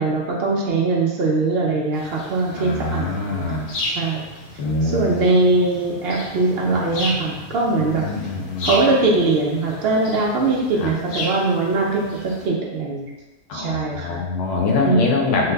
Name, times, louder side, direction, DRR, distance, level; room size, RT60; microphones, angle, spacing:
voice 1, 0.0-3.5 3.9-4.2 4.8-8.0 8.6-13.1 13.5-14.2 14.8-15.0, right 3 dB, 65° right, -2 dB, 0.6 m, -21 dB
sound 1, 1.9-12.5, left 1 dB, 90° left, 1.2 m, -34 dB
voice 2, 2.5-3.7 4.6-5.3 7.9-8.8 10.8-10.9 13.5-15.5, left 3 dB, 65° left, -1 dB, 0.9 m, -24 dB
3.1 x 2.1 x 3.3 m, 1.1 s
omnidirectional pair, 1.5 m